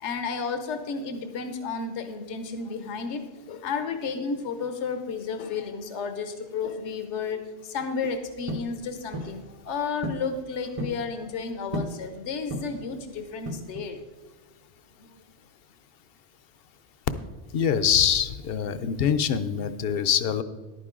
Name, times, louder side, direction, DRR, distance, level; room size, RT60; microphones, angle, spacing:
voice 1, 0.0-3.2 3.5-14.0, left 5 dB, 85° left, 8 dB, 1.1 m, -32 dB
sound 1, 8.5-8.7 9.1-9.4 10.0-10.3 10.6-11.0 11.7-12.0 12.5-12.9 13.5-13.9, equal, 35° right, 0.8 m, -33 dB
voice 2, 17.5-20.4, left 8 dB, 65° left, 13 dB, 0.7 m, -24 dB
11.0 x 9.2 x 3.7 m, 1.3 s
omnidirectional pair, 1.2 m